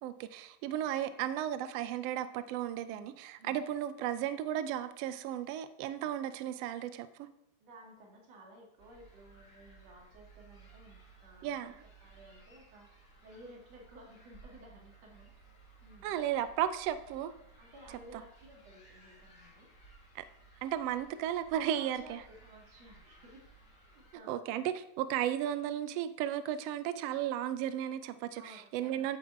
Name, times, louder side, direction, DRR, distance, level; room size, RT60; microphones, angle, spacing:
voice 1, 0.0-7.3 11.4-11.7 16.0-17.3 18.1-18.2 20.1-20.2 20.6-22.2 24.3-29.2, right 11 dB, 85° right, 12 dB, 1.4 m, -34 dB
voice 2, 2.9-3.6 7.6-12.9 13.2-15.3 15.8-16.1 17.6-19.7 21.7-23.5 23.8-24.7 28.3-29.2, right 1 dB, 55° right, -1 dB, 3.2 m, -55 dB
sound 1, 8.8-24.1, right 3 dB, 25° left, 2.6 m, -59 dB
9.4 x 5.5 x 7.8 m, 0.81 s
omnidirectional pair, 3.6 m